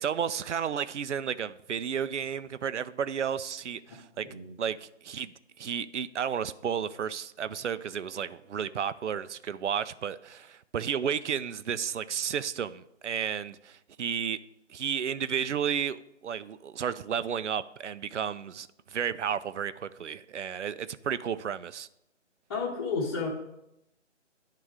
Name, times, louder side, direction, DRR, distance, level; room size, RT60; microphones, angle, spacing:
voice 1, 0.0-4.3 4.6-14.4 14.7-21.9, right 8 dB, 75° right, 0.5 m, -32 dB
voice 2, 22.5-23.3, left 4 dB, 20° left, 0.9 m, -31 dB
9.8 x 3.8 x 4.7 m
figure-of-eight pair, 155°, 36 cm